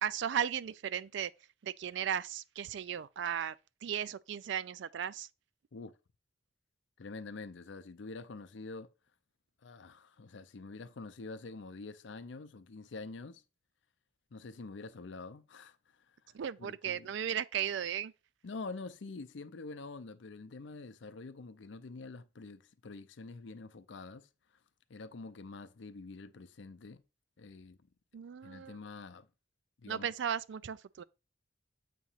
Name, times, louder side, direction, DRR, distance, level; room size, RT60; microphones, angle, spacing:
voice 1, 0.0-1.3 1.6-3.6 3.8-5.3 16.3-18.1 28.1-28.8 29.9-31.0, right 9 dB, 65° right, 0.4 m, -36 dB
voice 2, 7.0-8.9 9.6-13.4 14.3-15.8 16.1-16.2 16.6-17.1 18.4-24.3 24.9-27.0 27.4-27.8 28.4-29.3 29.8-30.1, left 3 dB, 65° left, 0.6 m, -46 dB
7.6 x 2.9 x 5.6 m
head